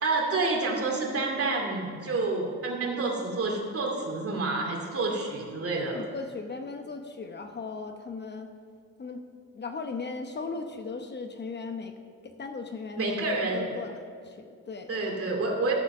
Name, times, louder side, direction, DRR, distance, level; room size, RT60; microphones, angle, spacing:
voice 1, 0.0-6.0 13.0-13.6 14.9-15.7, right 3 dB, 50° right, 0 dB, 2.4 m, -28 dB
voice 2, 5.7-8.5 9.0-9.2 9.5-15.1, left 4 dB, 35° left, 6 dB, 0.9 m, -38 dB
12.0 x 7.3 x 6.7 m, 2.2 s
cardioid pair, 115°, 29 cm